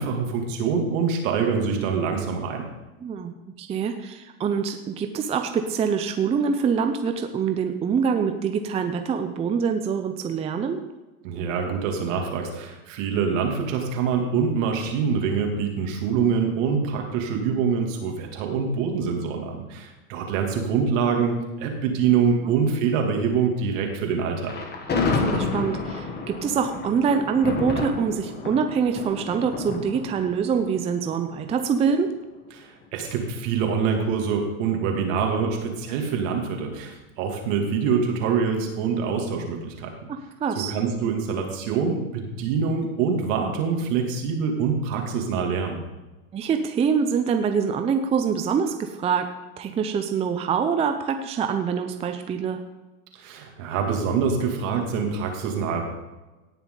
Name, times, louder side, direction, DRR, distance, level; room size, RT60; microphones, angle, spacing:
voice 1, 0.0-2.6 11.2-24.6 32.5-39.9 40.5-45.8 53.1-55.8, right 6 dB, 60° right, 2 dB, 2.7 m, -25 dB
voice 2, 3.0-10.8 22.4-22.5 25.3-32.1 40.1-40.7 46.3-49.3 49.6-52.6, right 6 dB, 15° right, 7 dB, 0.5 m, -25 dB
Thunder, 24.4-31.6, left 3 dB, 20° left, 1.8 m, -30 dB
17.5 x 6.9 x 3.9 m, 1.1 s
hypercardioid pair, 125°, 44 cm